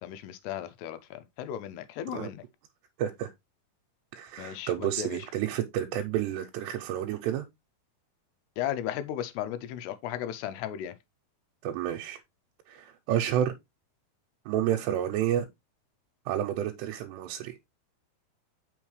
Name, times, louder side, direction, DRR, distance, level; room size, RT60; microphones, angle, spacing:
voice 1, 0.0-2.4 4.4-5.2 8.6-10.9, left 11 dB, 85° left, 2.6 m, -35 dB
voice 2, 3.0-3.3 4.1-7.5 11.6-12.2 12.7-13.5 14.5-15.5 16.3-17.6, right 11 dB, 85° right, 2.8 m, -30 dB
7.2 x 5.3 x 3.2 m
omnidirectional pair, 4.9 m